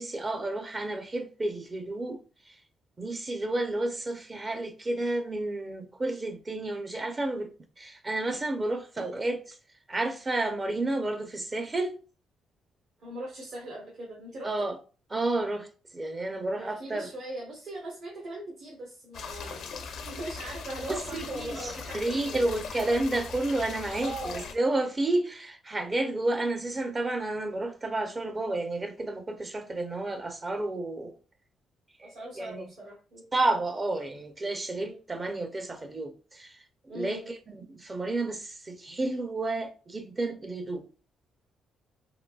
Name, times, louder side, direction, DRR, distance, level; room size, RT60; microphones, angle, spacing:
voice 1, 0.0-2.2 3.0-7.5 7.8-9.5 9.9-12.0 14.4-14.8 15.1-15.7 15.9-17.1 20.9-31.1 32.0-32.7 33.3-36.5 36.9-40.9, right 2 dB, 30° right, 0.5 m, -31 dB
voice 2, 13.0-14.5 16.5-22.6 24.0-24.5 32.0-33.2 34.8-35.0 36.9-37.3, right 1 dB, 75° right, 1.3 m, -40 dB
sound 1, 19.1-24.5, left 5 dB, 75° left, 0.5 m, -40 dB
3.7 x 2.6 x 2.2 m
cardioid pair, 90°, 0 cm